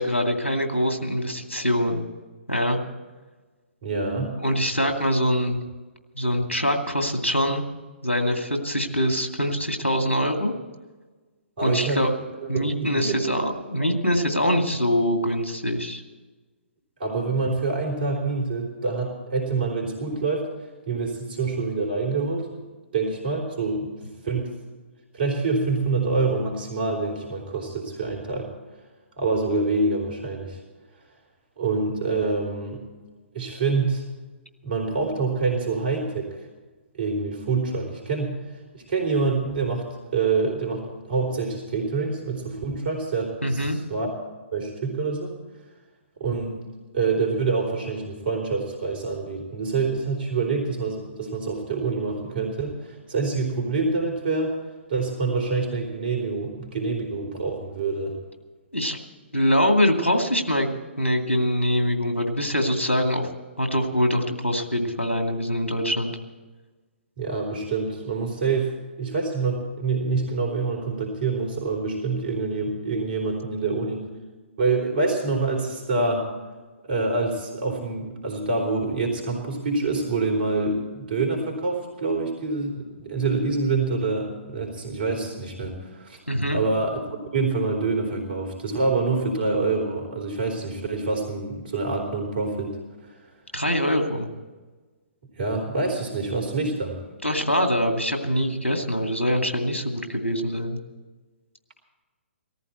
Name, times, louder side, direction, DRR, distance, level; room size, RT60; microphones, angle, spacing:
voice 1, 0.0-2.1 2.5-2.8 4.4-5.6 6.1-7.6 8.0-10.5 11.6-12.1 12.5-16.0 43.4-43.8 58.7-59.0 59.3-60.7 61.0-63.3 63.6-66.2 86.3-86.6 93.5-94.3 97.2-100.8, equal, 90° left, 4 dB, 2.4 m, -24 dB
voice 2, 3.8-4.3 11.6-12.0 12.4-13.5 13.8-13.9 17.0-20.5 20.9-22.6 22.9-23.9 24.2-24.5 25.1-28.5 29.2-30.6 31.6-32.8 33.3-34.0 34.6-36.3 36.9-38.3 38.7-44.1 44.5-45.3 46.2-46.6 46.9-54.5 54.9-58.2 67.2-74.1 74.6-76.3 76.9-86.2 86.5-87.0 87.3-93.1 95.4-96.9, right 3 dB, 50° right, 1 dB, 4.2 m, -26 dB
19.0 x 14.0 x 4.4 m, 1.3 s
figure-of-eight pair, 125°, 7 cm